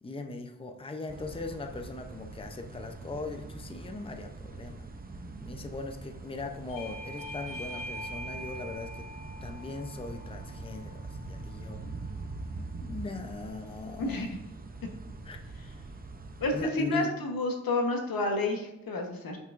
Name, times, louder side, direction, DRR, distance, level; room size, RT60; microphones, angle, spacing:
voice 1, 0.0-4.9 5.4-9.1 9.4-11.8 12.8-14.3 15.2-15.4 16.5-17.1, left 3 dB, 15° left, 6 dB, 0.6 m, -40 dB
sound 1, 1.1-16.6, right 3 dB, 25° right, 0.6 m, -43 dB
Bell / Doorbell, 6.7-11.9, equal, 65° left, 2.1 m, -43 dB
voice 2, 14.0-14.4 16.4-19.4, left 2 dB, 90° left, 3 dB, 1.1 m, -30 dB
7.6 x 5.5 x 2.5 m, 0.86 s
wide cardioid pair, 85°, 34 cm